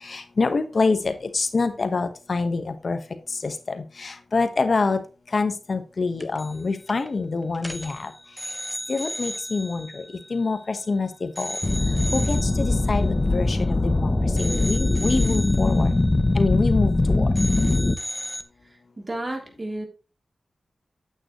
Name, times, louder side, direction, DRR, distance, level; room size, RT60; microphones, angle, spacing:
voice 1, 0.0-3.0 3.3-5.0 5.3-8.1 8.9-10.0 10.3-11.6 12.1-14.1 14.4-15.9 16.3-17.3, left 3 dB, 60° left, 9 dB, 1.2 m, -26 dB
sound 1, 6.2-6.6 6.9-7.1 7.5-10.9 11.4-14.0 14.4-17.0 17.3-18.4, equal, 10° left, 1.1 m, -36 dB
sound 2, 11.6-17.9, left 2 dB, 35° left, 0.7 m, -21 dB
voice 2, 18.6-19.9, right 1 dB, 35° right, 2 dB, 3.1 m, -33 dB
9.0 x 8.0 x 3.0 m, 0.31 s
cardioid pair, 45°, 0 cm